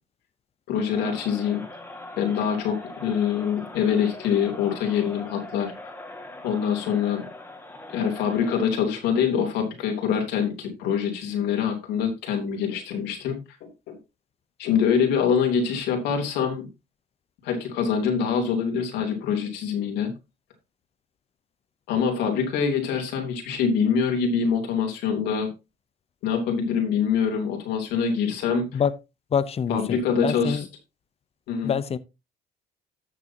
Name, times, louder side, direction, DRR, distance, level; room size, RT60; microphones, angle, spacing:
voice 1, 0.7-1.6 2.2-5.7 6.4-7.2 7.9-14.0 14.6-16.7 17.4-20.1 21.9-25.5 26.2-28.8 29.7-30.7 31.5-31.7, left 7 dB, 85° left, 3.2 m, -25 dB
Crowd, 0.8-8.8, left 1 dB, 10° left, 1.8 m, -41 dB
voice 2, 29.3-30.6 31.6-32.0, left 7 dB, 35° left, 0.8 m, -26 dB
13.5 x 6.7 x 2.9 m
cardioid pair, 110°, 17 cm